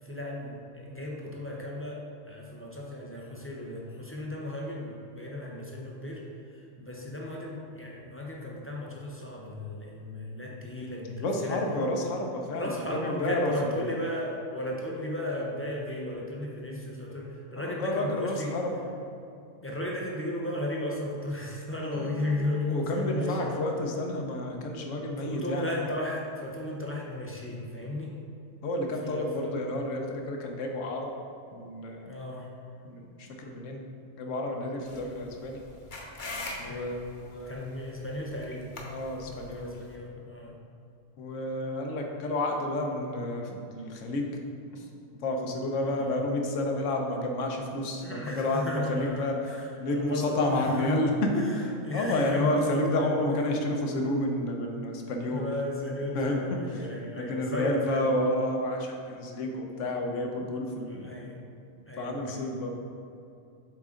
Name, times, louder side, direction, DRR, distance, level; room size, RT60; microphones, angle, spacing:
voice 1, 0.0-6.2 6.5-11.6 12.6-18.6 19.6-23.6 25.2-28.1 29.0-29.5 32.1-32.5 36.7-37.0 37.5-38.7 39.2-40.5 45.8-46.2 48.0-51.1 51.4-53.1 55.3-58.1 60.9-61.4 61.9-62.5, left 1 dB, 20° left, -2 dB, 0.4 m, -35 dB
voice 2, 11.2-13.9 17.6-18.8 22.7-25.7 28.6-31.1 31.5-32.2 32.8-33.8 34.2-35.6 36.6-37.7 38.9-39.7 41.2-44.3 44.7-44.9 45.2-49.5 49.8-55.5 56.1-56.6 57.1-61.1 62.0-62.8, left 1 dB, 70° left, 2 dB, 1.1 m, -30 dB
sound 1, 21.8-23.5, left 1 dB, 60° right, 1.2 m, -44 dB
sound 2, 34.8-40.0, left 2 dB, 45° left, 0.8 m, -43 dB
7.4 x 3.8 x 3.7 m, 2.6 s
omnidirectional pair, 1.4 m